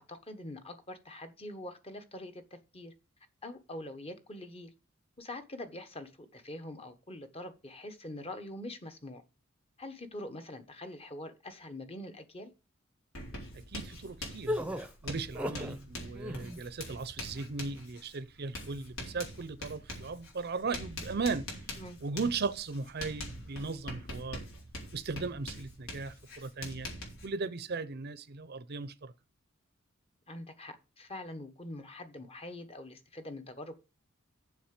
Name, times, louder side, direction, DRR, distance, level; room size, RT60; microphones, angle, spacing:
voice 1, 0.0-2.4 2.7-2.9 3.4-4.7 5.2-9.2 9.8-12.5 21.8-22.0 30.3-33.8, left 1 dB, 30° left, 1.2 m, -44 dB
Writing, 13.1-27.3, left 1 dB, 80° left, 4.1 m, -44 dB
voice 2, 13.5-14.5 15.0-21.5 22.0-24.4 24.9-26.9 27.2-29.1, right 4 dB, 50° right, 0.7 m, -37 dB
sound 1, 14.5-15.8 16.1-16.6, left 1 dB, 5° right, 0.8 m, -35 dB
7.2 x 5.9 x 7.5 m
head